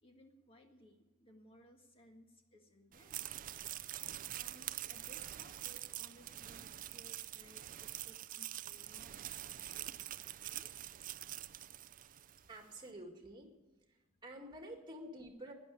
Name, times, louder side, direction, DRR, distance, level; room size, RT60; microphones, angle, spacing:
voice 1, 0.0-3.2 4.3-10.1 10.4-10.7 13.9-14.1, equal, 25° left, 4 dB, 1.8 m, -62 dB
sound 1, 2.9-12.5, right 13 dB, 40° right, 0.4 m, -45 dB
voice 2, 12.5-13.5 13.9-15.5, right 1 dB, 20° right, 3 dB, 2.2 m, -50 dB
11.5 x 10.5 x 9.9 m, 1.1 s
head